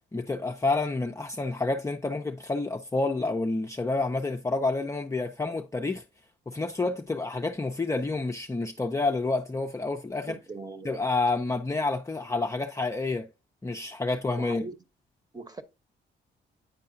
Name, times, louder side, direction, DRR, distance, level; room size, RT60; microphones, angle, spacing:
voice 1, 0.1-6.0 6.5-10.4 10.8-13.3 13.6-14.7, left 3 dB, 15° left, 0.5 m, -29 dB
voice 2, 10.3-11.0 14.4-14.7 15.3-15.6, right 2 dB, 20° right, 1.0 m, -40 dB
9.5 x 4.7 x 2.7 m
cardioid pair, 90°, 20 cm